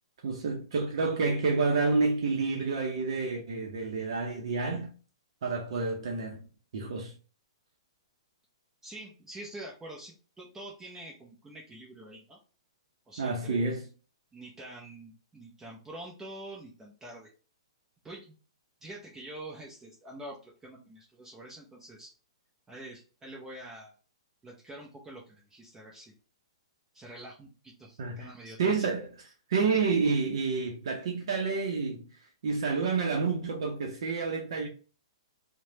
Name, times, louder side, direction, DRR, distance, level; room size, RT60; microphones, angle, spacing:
voice 1, 0.2-4.9 5.4-6.4 6.7-7.1 13.2-13.9 28.0-28.3 28.6-29.1 29.5-32.1 32.4-34.7, right 4 dB, 65° right, 0.6 m, -29 dB
voice 2, 8.8-12.4 13.1-13.7 14.3-17.3 18.0-18.3 18.8-22.1 22.7-23.9 24.4-26.1 26.9-28.9, right 1 dB, 10° right, 0.6 m, -46 dB
3.0 x 2.1 x 2.8 m
hypercardioid pair, 140°, 3 cm